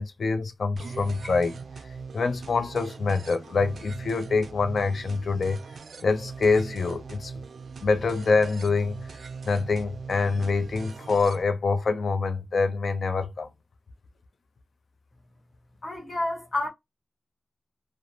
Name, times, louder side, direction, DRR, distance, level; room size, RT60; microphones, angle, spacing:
voice 1, 0.0-1.6 2.1-5.6 6.0-7.3 7.8-8.9 9.4-13.5, left 4 dB, 75° left, 0.5 m, -25 dB
sound 1, 0.8-11.4, right 5 dB, 85° right, 0.3 m, -41 dB
voice 2, 15.8-16.7, left 2 dB, 60° left, 0.9 m, -29 dB
2.5 x 2.0 x 2.8 m
wide cardioid pair, 70°, 0 cm